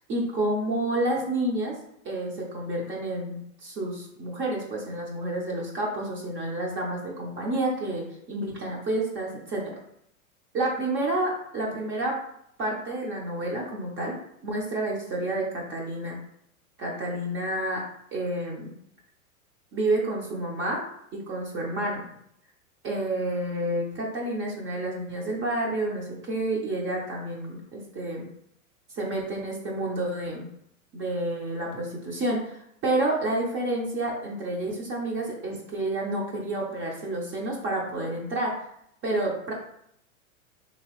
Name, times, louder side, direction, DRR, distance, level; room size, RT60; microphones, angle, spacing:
voice 1, 0.0-1.7 2.0-9.7 10.5-12.2 12.6-14.2 14.4-16.2 16.8-17.8 18.1-18.7 19.7-20.8 21.1-22.0 22.8-28.3 28.9-30.5 30.9-38.5 39.0-39.5, right 1 dB, 30° right, -2 dB, 0.7 m, -29 dB
3.0 x 2.9 x 3.0 m, 0.72 s
hypercardioid pair, 115°, 42 cm